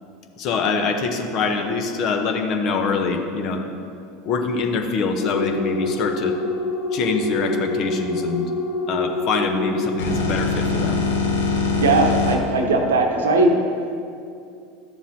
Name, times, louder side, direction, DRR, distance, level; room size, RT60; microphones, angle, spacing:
voice 1, 0.4-3.6 4.2-6.4 6.9-8.5 8.9-11.0, left 4 dB, 50° left, 5 dB, 0.9 m, -24 dB
sound 1, 5.2-12.4, left 3 dB, 80° left, 1.0 m, -24 dB
voice 2, 11.7-13.5, right 3 dB, 80° right, 3 dB, 0.9 m, -19 dB
12.0 x 7.1 x 2.8 m, 2.5 s
hypercardioid pair, 80°, 0 cm